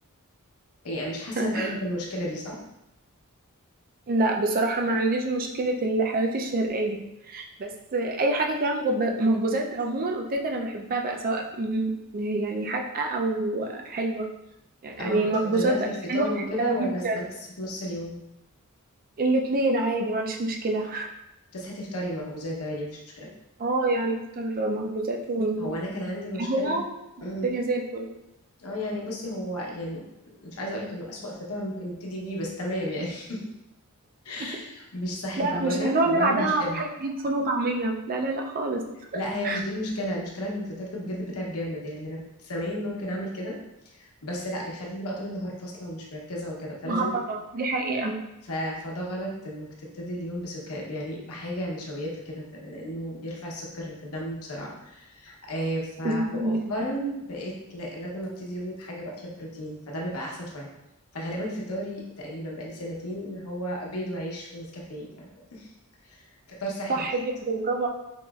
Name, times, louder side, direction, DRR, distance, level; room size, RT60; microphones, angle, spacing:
voice 1, 0.8-2.6 15.0-18.2 21.5-23.3 25.6-26.7 27.2-27.5 28.6-30.0 30.4-33.4 34.2-36.8 39.1-43.6 43.9-47.2 48.4-60.7 61.1-65.7 66.0-66.2 66.5-67.1, equal, 70° left, -2 dB, 0.9 m, -33 dB
voice 2, 1.4-1.7 4.1-7.0 7.3-14.3 14.8-17.2 19.2-21.1 23.6-25.7 26.4-26.8 27.4-28.1 35.4-38.8 39.1-39.6 46.9-48.1 56.0-56.8 66.9-67.9, right 2 dB, 40° right, 2 dB, 0.4 m, -26 dB
4.6 x 3.0 x 2.3 m, 0.89 s
head